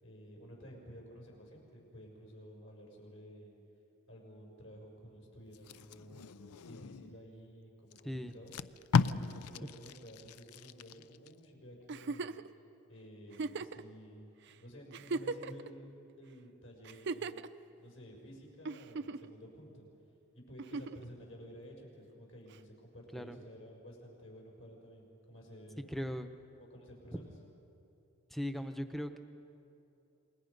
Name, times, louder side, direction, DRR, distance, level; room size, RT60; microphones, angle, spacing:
voice 1, 0.0-3.5 4.1-6.3 6.7-8.5 9.0-12.4 12.9-14.3 14.6-15.9 16.2-17.4 17.8-19.9 20.3-25.8 26.6-27.3, equal, 65° left, -1 dB, 6.0 m, -52 dB
Packing tape duct tape, 5.5-7.2 7.9-8.0 8.3-11.3 11.7-12.0, left 5 dB, 85° left, 0.5 m, -35 dB
voice 2, 8.0-8.3 23.1-23.4 25.9-26.3 28.3-29.2, equal, ahead, 8 dB, 0.8 m, -38 dB
Giggle, 11.9-12.5 13.3-13.8 14.5-14.6 14.9-15.7 16.8-17.5 18.7-19.3 20.6-21.0 22.5-22.6, right 3 dB, 50° right, 0.5 m, -38 dB
28.0 x 21.0 x 5.3 m, 2.7 s
head